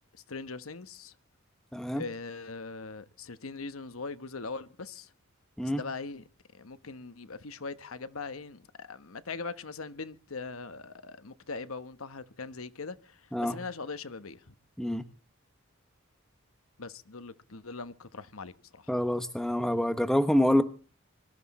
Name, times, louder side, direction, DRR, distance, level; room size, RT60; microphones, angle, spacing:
voice 1, 0.3-1.1 1.9-5.1 5.6-6.2 6.5-14.5 16.8-18.9, left 4 dB, 75° left, 1.1 m, -41 dB
voice 2, 1.7-2.1 5.6-5.8 13.3-13.6 14.8-15.0 18.9-20.6, left 1 dB, ahead, 1.3 m, -26 dB
23.5 x 13.5 x 4.2 m
head